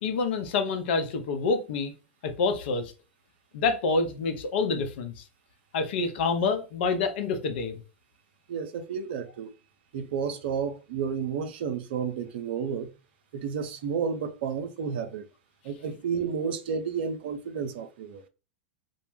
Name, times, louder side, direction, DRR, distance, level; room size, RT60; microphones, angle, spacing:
voice 1, 0.0-1.9 2.2-2.9 3.5-5.2 5.7-7.8, left 4 dB, 60° left, 0.6 m, -27 dB
voice 2, 8.5-9.5 9.9-12.9 13.3-15.2 15.6-18.2, right 6 dB, 60° right, 0.4 m, -31 dB
2.1 x 2.0 x 3.1 m
figure-of-eight pair, 90°, 6 cm